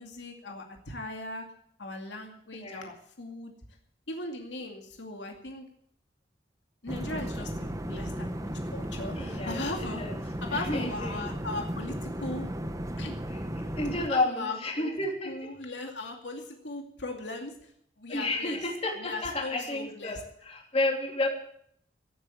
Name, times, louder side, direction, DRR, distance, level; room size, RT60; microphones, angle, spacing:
voice 1, 0.0-1.5 1.8-3.5 4.1-5.6 6.8-12.5 13.0-13.2 14.1-15.0 15.2-17.7 18.0-18.6 19.0-20.2, left 2 dB, 90° left, 3 dB, 2.4 m, -38 dB
sound 1, 6.9-14.1, equal, 20° right, 1.1 m, -35 dB
voice 2, 9.2-9.6 10.0-10.1 10.5-11.2 13.6-15.3 18.1-20.2 20.4-21.3, left 2 dB, 35° left, 1 dB, 3.2 m, -31 dB
16.5 x 8.6 x 8.6 m, 0.66 s
head